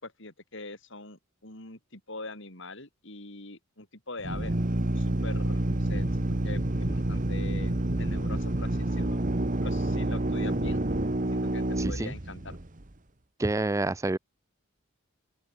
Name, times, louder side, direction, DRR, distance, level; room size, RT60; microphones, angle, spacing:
voice 1, 0.0-4.5 5.0-7.7 8.0-9.2 9.6-10.9 11.3-12.6, left 2 dB, 60° left, 5.6 m, -43 dB
Drill, 4.2-12.8, right 1 dB, 35° right, 1.5 m, -28 dB
voice 2, 11.8-12.1 13.4-14.2, right 2 dB, 15° right, 0.4 m, -28 dB
open air
head